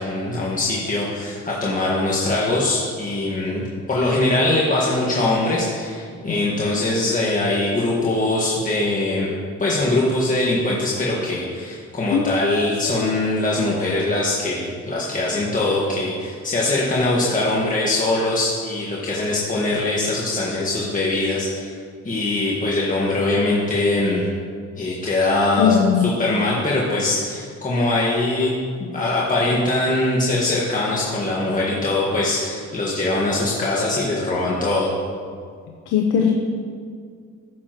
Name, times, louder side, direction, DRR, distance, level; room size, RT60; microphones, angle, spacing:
voice 1, 0.0-3.6 3.9-9.3 9.6-21.7 22.0-24.3 24.8-25.7 26.0-34.9, left 2 dB, 25° left, -5 dB, 1.6 m, -22 dB
voice 2, 25.6-26.1 35.9-36.3, left 8 dB, 90° left, 2 dB, 0.8 m, -18 dB
15.0 x 7.2 x 3.0 m, 2.1 s
cardioid pair, 90°, 30 cm